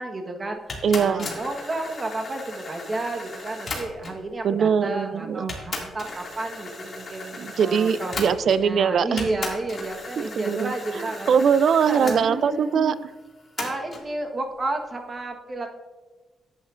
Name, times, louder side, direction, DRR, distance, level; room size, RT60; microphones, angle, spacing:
voice 1, 0.0-8.3 8.6-11.3 11.8-12.9 13.6-15.8, right 2 dB, 35° right, 4 dB, 1.2 m, -32 dB
sound 1, 0.7-4.3 5.0-5.1 5.5-8.8 9.2-12.2 13.6-14.1, left 3 dB, 45° left, 2.2 m, -36 dB
voice 2, 0.8-1.3 4.4-5.5 7.4-9.4 10.2-12.9, right 7 dB, 70° right, 16 dB, 0.4 m, -22 dB
10.5 x 8.7 x 2.5 m, 1.2 s
cardioid pair, 80°, 0 cm